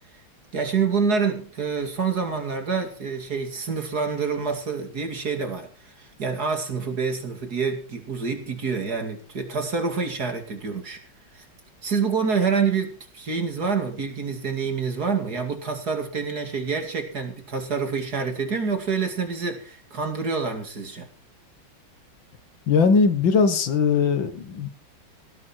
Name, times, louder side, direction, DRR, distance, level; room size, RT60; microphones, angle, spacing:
voice 1, 0.5-5.7 6.0-11.0 11.3-11.4 11.8-21.1, right 5 dB, 50° right, 3.0 m, -27 dB
voice 2, 22.7-24.7, left 5 dB, 70° left, 2.1 m, -20 dB
18.0 x 11.0 x 4.6 m
omnidirectional pair, 2.2 m